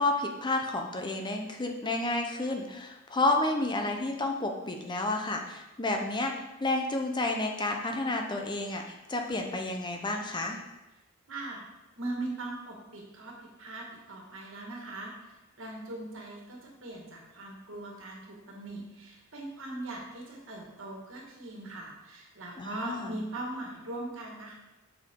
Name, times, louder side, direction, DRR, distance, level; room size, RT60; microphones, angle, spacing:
voice 1, 0.0-10.6 22.6-23.2, left 2 dB, 20° left, 3 dB, 0.6 m, -30 dB
voice 2, 11.3-11.6 12.0-24.5, right 2 dB, 60° right, -1 dB, 1.7 m, -40 dB
7.8 x 5.8 x 3.7 m, 1.0 s
head